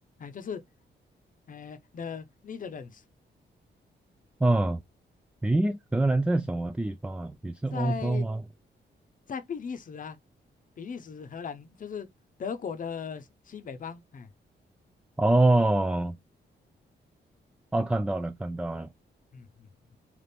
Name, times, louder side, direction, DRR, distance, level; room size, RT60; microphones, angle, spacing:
voice 1, 0.2-0.6 1.5-3.0 7.7-8.3 9.3-10.2 10.8-12.1 12.4-14.3 19.3-19.7, left 6 dB, 45° left, 0.7 m, -38 dB
voice 2, 4.4-4.8 5.4-8.4 15.2-16.2 17.7-18.9, right 2 dB, 5° right, 0.3 m, -25 dB
3.5 x 2.5 x 4.1 m
cardioid pair, 110°, 19 cm